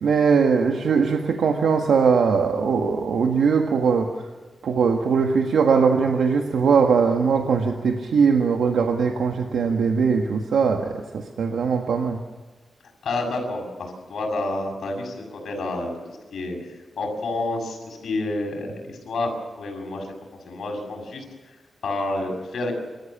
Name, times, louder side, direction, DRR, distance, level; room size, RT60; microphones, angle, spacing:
voice 1, 0.0-4.1 4.6-12.2, right 5 dB, 85° right, 3 dB, 1.7 m, -20 dB
voice 2, 13.0-22.8, left 2 dB, 70° left, 2 dB, 6.9 m, -30 dB
29.0 x 14.5 x 7.3 m, 1.3 s
wide cardioid pair, 145°, 0 cm